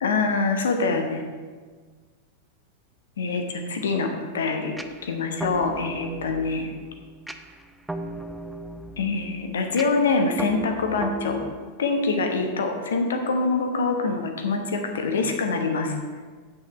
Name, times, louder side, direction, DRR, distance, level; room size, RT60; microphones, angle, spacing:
voice 1, 0.0-1.3 3.2-4.7 5.0-6.7 9.0-11.4 11.8-15.9, left 4 dB, 65° left, 5 dB, 1.1 m, -25 dB
sound 1, 4.8-11.5, right 1 dB, 5° right, 0.5 m, -36 dB
8.7 x 7.8 x 4.3 m, 1.5 s
figure-of-eight pair, 90°, 0 cm